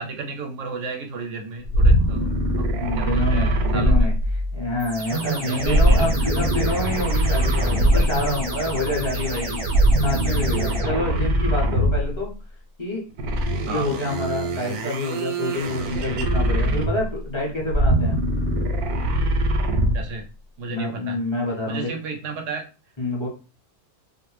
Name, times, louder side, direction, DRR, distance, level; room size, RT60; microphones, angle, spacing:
voice 1, 0.0-2.7 2.9-4.1 5.0-6.5 7.8-8.4 9.1-9.5 13.7-13.9 19.9-20.3 20.6-21.2 21.7-22.7, right 4 dB, 65° right, 3 dB, 0.8 m, -32 dB
sound 1, 1.7-4.7 5.6-8.3 9.6-12.2 13.2-17.2 17.6-20.1, right 1 dB, 85° right, 1.1 m, -22 dB
voice 2, 2.8-4.1 4.5-9.6 10.0-12.3 12.8-13.0 13.6-18.2 20.7-21.9 23.0-23.3, left 2 dB, 30° left, -3 dB, 0.5 m, -27 dB
sound 2, 4.8-11.6, right 1 dB, 50° right, 0.4 m, -30 dB
2.5 x 2.0 x 3.1 m, 0.32 s
omnidirectional pair, 1.6 m